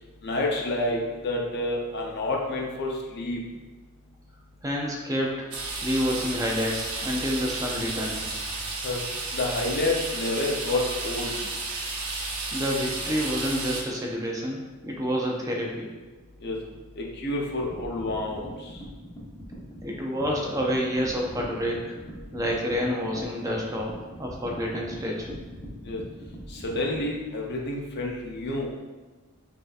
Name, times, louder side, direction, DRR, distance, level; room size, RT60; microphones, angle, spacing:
voice 1, 0.2-3.4 8.8-9.0 9.3-11.3 16.4-16.6 17.0-18.8 25.8-26.0 26.5-28.7, left 2 dB, 50° left, -1 dB, 0.7 m, -29 dB
voice 2, 4.6-5.5 5.8-8.3 12.5-15.9 19.8-21.9 22.3-25.4, equal, 15° right, -1 dB, 0.4 m, -28 dB
sound 1, 5.5-13.8, right 3 dB, 85° right, 0.8 m, -32 dB
sound 2, 17.6-27.1, equal, 20° left, 0.8 m, -41 dB
5.2 x 2.7 x 2.4 m, 1.2 s
head